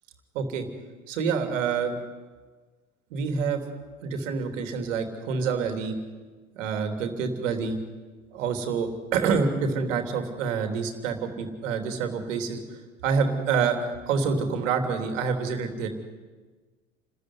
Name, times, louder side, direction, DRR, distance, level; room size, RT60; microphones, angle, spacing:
voice 1, 0.3-0.7 1.1-1.9 3.1-3.6 4.0-6.0 6.5-7.8 8.3-12.6 13.0-15.9, right 5 dB, 60° right, 6 dB, 3.4 m, -27 dB
29.0 x 13.5 x 9.8 m, 1.4 s
figure-of-eight pair, 80°, 43 cm